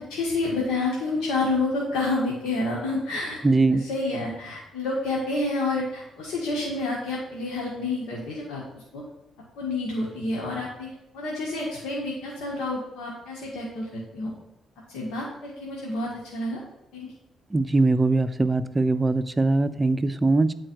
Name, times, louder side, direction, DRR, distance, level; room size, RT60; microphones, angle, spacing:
voice 1, 0.0-3.4 3.7-9.0 9.6-14.3 14.9-16.6 16.9-17.1, left 2 dB, 90° left, -4 dB, 1.7 m, -29 dB
voice 2, 3.4-3.8 17.5-20.5, right 3 dB, 20° right, 13 dB, 0.5 m, -21 dB
8.9 x 4.5 x 4.6 m, 0.87 s
cardioid pair, 90°, 0 cm